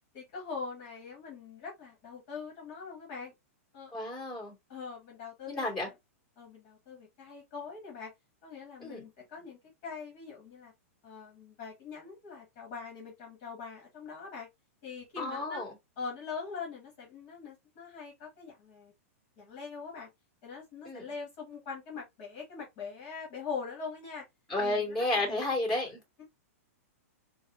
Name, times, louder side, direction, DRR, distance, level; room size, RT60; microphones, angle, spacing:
voice 1, 0.1-3.3 3.7-3.9 4.7-5.9 6.4-8.1 8.4-10.7 11.0-14.5 14.8-15.6 16.0-18.9 19.4-20.1 20.4-24.2 24.6-25.4, left 5 dB, 40° left, 1.4 m, -42 dB
voice 2, 3.9-4.6 5.5-5.9 8.8-9.1 15.2-15.7 20.9-21.0 24.5-26.0, left 2 dB, 10° left, 2.0 m, -32 dB
4.1 x 2.2 x 2.5 m
hypercardioid pair, 150°, 8 cm